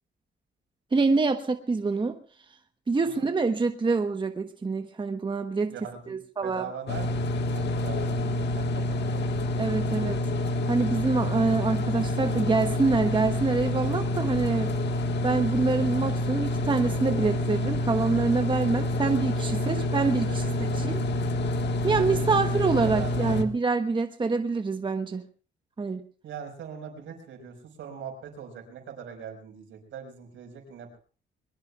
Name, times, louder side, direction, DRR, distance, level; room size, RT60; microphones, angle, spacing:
voice 1, 0.9-2.2 2.9-5.7 6.1-6.6 9.6-10.2 10.7-14.7 15.2-21.0 21.8-25.2 25.8-26.0, right 4 dB, 25° right, 7 dB, 1.1 m, -26 dB
voice 2, 5.7-9.9 14.7-14.8 19.5-20.9 21.8-23.5 26.2-31.0, right 7 dB, 75° right, 6 dB, 5.0 m, -42 dB
sound 1, 6.9-23.4, left 1 dB, 60° left, 1.6 m, -28 dB
22.5 x 22.0 x 2.4 m, 0.40 s
cardioid pair, 90°, 20 cm